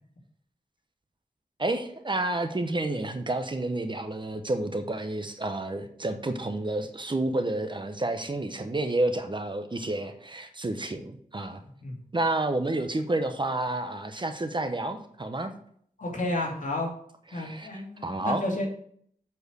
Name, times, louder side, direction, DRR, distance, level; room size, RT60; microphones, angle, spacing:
voice 1, 1.6-11.6 12.1-15.5 17.3-18.4, right 2 dB, 30° right, 7 dB, 1.0 m, -30 dB
voice 2, 16.0-16.9 17.3-18.7, left 1 dB, 60° left, -1 dB, 2.8 m, -31 dB
8.1 x 4.8 x 6.4 m, 0.62 s
wide cardioid pair, 95°, 15 cm